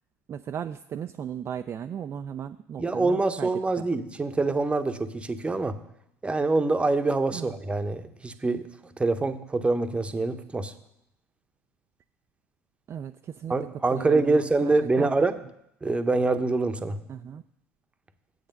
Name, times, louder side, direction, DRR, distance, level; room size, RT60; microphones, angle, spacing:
voice 1, 0.3-3.5 3.8-3.9 7.3-7.5 12.9-15.1 17.1-17.4, right 8 dB, 35° right, 8 dB, 0.4 m, -36 dB
voice 2, 2.8-5.8 6.2-8.7 9.0-10.7 13.5-15.4 15.8-17.0, right 3 dB, 15° right, 9 dB, 0.9 m, -25 dB
8.9 x 8.1 x 5.3 m, 0.77 s
figure-of-eight pair, 65°, 8 cm